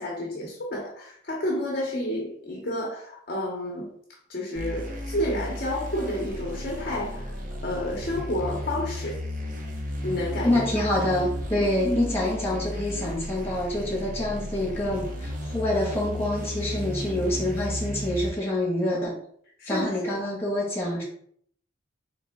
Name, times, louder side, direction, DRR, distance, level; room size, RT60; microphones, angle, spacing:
voice 1, 0.0-3.9 4.3-7.4 7.6-9.2 10.0-10.9 11.5-11.7 19.6-20.1, left 1 dB, 45° left, -2 dB, 0.8 m, -30 dB
sound 1, 4.6-18.3, equal, 40° right, 0.7 m, -34 dB
voice 2, 10.4-19.1 19.7-21.0, left 1 dB, 10° left, -4 dB, 1.5 m, -26 dB
3.6 x 3.3 x 3.5 m, 0.63 s
head